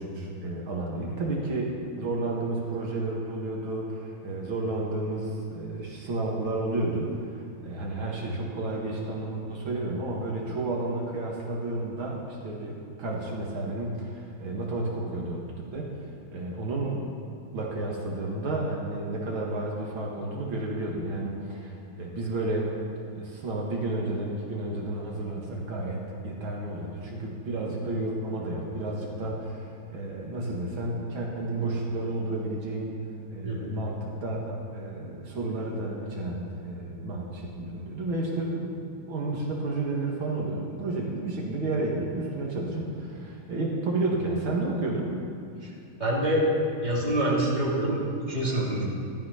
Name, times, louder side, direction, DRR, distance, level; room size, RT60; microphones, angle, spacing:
voice 1, 0.0-15.4 15.7-15.9 16.3-17.0 17.5-22.7 23.2-32.9 33.3-45.2, right 2 dB, 75° right, -2 dB, 2.7 m, -31 dB
voice 2, 46.0-46.4 46.8-48.0 48.3-48.8, right 1 dB, 20° right, -6 dB, 3.4 m, -26 dB
15.5 x 13.0 x 5.8 m, 2.7 s
omnidirectional pair, 2.2 m